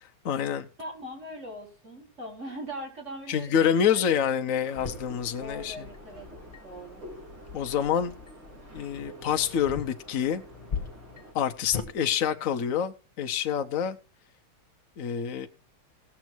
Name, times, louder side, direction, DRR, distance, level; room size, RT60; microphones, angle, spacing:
voice 1, 0.0-0.7 3.3-5.9 7.5-8.1 8.7-10.4 11.3-14.0 15.0-15.5, left 8 dB, 65° left, 0.8 m, -27 dB
voice 2, 0.8-4.0 5.4-6.3 6.6-7.0, right 1 dB, 35° right, 4.6 m, -40 dB
sound 1, 4.6-11.3, right 1 dB, 80° right, 5.5 m, -48 dB
sound 2, 4.8-11.9, left 6 dB, 25° left, 1.4 m, -41 dB
17.5 x 7.2 x 4.5 m
omnidirectional pair, 2.3 m